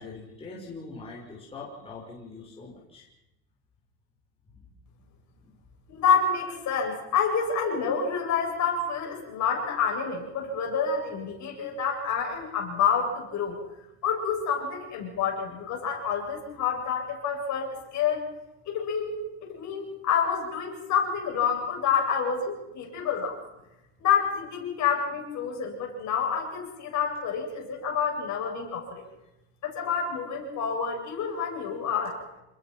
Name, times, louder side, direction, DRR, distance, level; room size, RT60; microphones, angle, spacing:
voice 1, 0.0-3.1 4.5-4.7 5.4-5.5, left 3 dB, 15° left, -4 dB, 5.8 m, -43 dB
voice 2, 5.9-13.6 14.0-18.3 18.7-23.4 24.0-29.0 29.6-32.2, left 6 dB, 45° left, 0 dB, 7.8 m, -28 dB
28.5 x 21.0 x 6.0 m, 0.95 s
cardioid pair, 145°, 40 cm